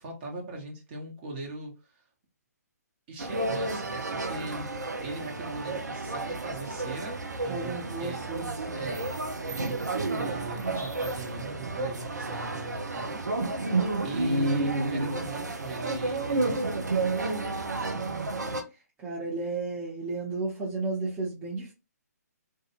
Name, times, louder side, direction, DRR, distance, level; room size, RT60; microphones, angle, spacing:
voice 1, 0.0-2.0 3.1-4.7 5.0-8.2 8.7-9.1 9.4-13.2 13.5-17.1 17.8-18.3, right 3 dB, 35° right, 1.0 m, -40 dB
sound 1, 3.2-18.6, right 2 dB, 90° right, 0.6 m, -31 dB
voice 2, 7.5-8.9 17.9-18.3 19.0-21.7, right 3 dB, 15° right, 0.7 m, -34 dB
2.3 x 2.2 x 2.8 m
figure-of-eight pair, 140°, 9 cm